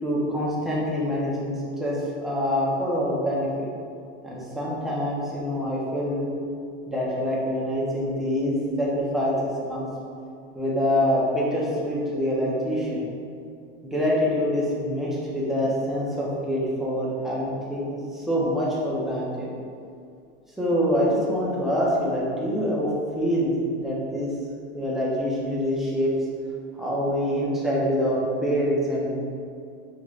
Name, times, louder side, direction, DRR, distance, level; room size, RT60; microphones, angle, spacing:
voice 1, 0.0-3.5 4.2-6.3 6.9-9.3 9.7-9.9 10.5-13.1 13.8-19.5 20.6-22.9 23.2-24.3 24.7-26.1 26.8-29.2, equal, ahead, -7 dB, 0.9 m, -25 dB
5.1 x 3.3 x 2.5 m, 2.4 s
supercardioid pair, 125°, 32 cm